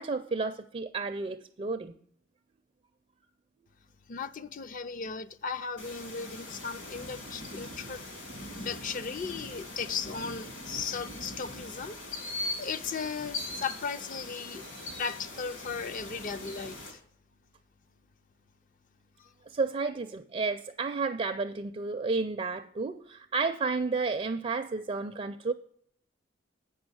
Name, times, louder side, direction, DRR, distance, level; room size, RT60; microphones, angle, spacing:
voice 1, 0.0-1.9 19.5-25.5, right 4 dB, 30° right, 0.4 m, -31 dB
voice 2, 4.1-8.0 8.6-12.0 12.3-14.6 15.0-17.0 19.2-19.3, left 5 dB, 45° left, 0.4 m, -36 dB
sound 1, 5.8-16.9, left 1 dB, 65° left, 2.8 m, -41 dB
8.0 x 6.1 x 6.2 m
head